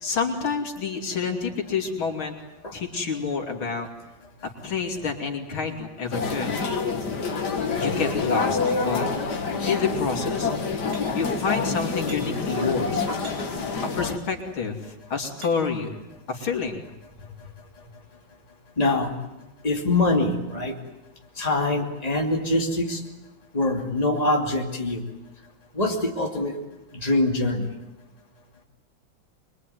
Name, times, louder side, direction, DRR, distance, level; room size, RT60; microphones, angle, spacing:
voice 1, 0.0-2.4 2.7-3.9 4.6-6.5 7.8-9.1 9.7-10.5 11.1-13.0 14.0-16.0 16.3-16.8, left 5 dB, 85° left, 2 dB, 3.7 m, -28 dB
sound 1, 6.1-14.2, left 4 dB, 55° left, 2.4 m, -27 dB
sound 2, 10.9-11.4 12.1-12.5 13.2-13.7 14.5-15.9 16.5-16.6, right 1 dB, 40° right, 5.2 m, -46 dB
voice 2, 18.8-19.1 19.6-20.8 21.4-23.0 23.5-25.0 25.7-26.5 26.9-27.7, left 2 dB, 20° left, 1 dB, 2.7 m, -24 dB
25.0 x 22.5 x 9.4 m, 0.93 s
omnidirectional pair, 2.2 m